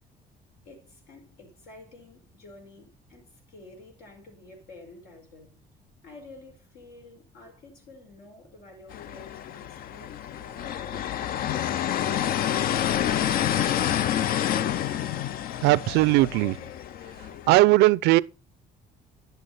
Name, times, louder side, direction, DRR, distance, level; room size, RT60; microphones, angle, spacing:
voice 1, 0.6-5.6 6.0-11.8, left 2 dB, 85° left, 5.0 m, -50 dB
sound 1, 8.9-17.6, left 10 dB, 60° left, 0.5 m, -28 dB
voice 2, 15.6-16.6 17.5-18.2, right 19 dB, 85° right, 0.5 m, -18 dB
10.5 x 8.0 x 4.0 m
cardioid pair, 110°, 17 cm